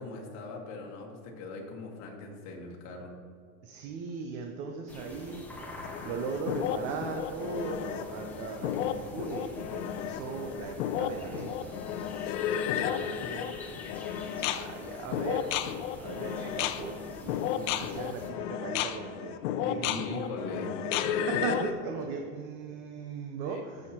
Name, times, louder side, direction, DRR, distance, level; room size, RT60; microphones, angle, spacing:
voice 1, 0.0-3.1 5.6-5.8 19.6-21.5 23.4-23.9, left 2 dB, 45° left, 0 dB, 1.6 m, -40 dB
voice 2, 3.6-5.4 6.0-11.7 12.7-13.8 14.5-15.5 16.0-16.9 17.2-23.9, right 5 dB, 40° right, 4 dB, 0.6 m, -38 dB
sound 1, 4.9-18.3, left 1 dB, 5° left, 0.9 m, -46 dB
sound 2, 5.8-21.7, left 10 dB, 75° left, 0.6 m, -33 dB
14.0 x 6.5 x 2.9 m, 2.2 s
supercardioid pair, 160°, 38 cm